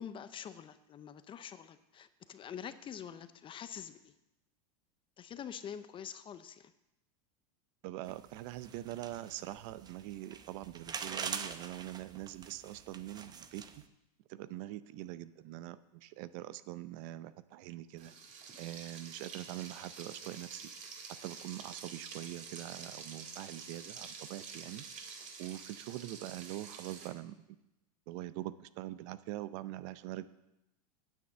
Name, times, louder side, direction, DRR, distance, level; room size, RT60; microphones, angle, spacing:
voice 1, 0.0-4.1 5.2-6.7, left 8 dB, 25° left, 13 dB, 0.6 m, -46 dB
voice 2, 7.8-13.6 14.3-18.1 18.6-20.7 21.2-24.9 25.4-27.6 28.1-30.3, right 15 dB, 55° right, 15 dB, 0.6 m, -43 dB
sound 1, 8.1-13.8, right 6 dB, 20° right, 0.7 m, -44 dB
Frying (food), 18.0-27.1, right 5 dB, 40° right, 2.1 m, -48 dB
9.5 x 7.1 x 7.4 m, 0.92 s
supercardioid pair, 120°, 20 cm